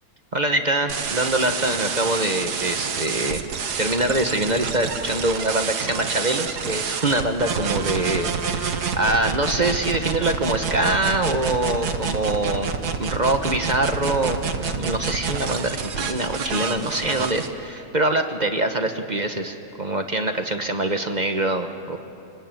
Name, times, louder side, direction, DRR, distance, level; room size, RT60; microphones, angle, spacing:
voice 1, 0.3-3.4 3.8-22.0, right 2 dB, 30° right, 6 dB, 1.1 m, -24 dB
sound 1, 0.9-17.5, right 6 dB, 80° right, 1.8 m, -28 dB
27.5 x 18.5 x 9.1 m, 2.7 s
omnidirectional pair, 1.7 m